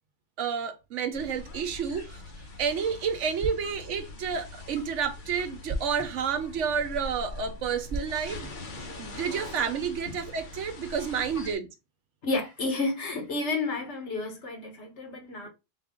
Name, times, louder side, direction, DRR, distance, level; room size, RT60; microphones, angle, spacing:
voice 1, 0.4-2.2 2.6-8.5 9.0-11.7, right 6 dB, 70° right, 1.0 m, -30 dB
sound 1, 1.1-11.6, left 2 dB, 45° left, 1.0 m, -43 dB
sound 2, 2.1-9.1, right 1 dB, 30° right, 0.6 m, -42 dB
voice 2, 12.2-15.5, left 3 dB, 65° left, 1.5 m, -31 dB
4.0 x 2.5 x 3.6 m
omnidirectional pair, 1.3 m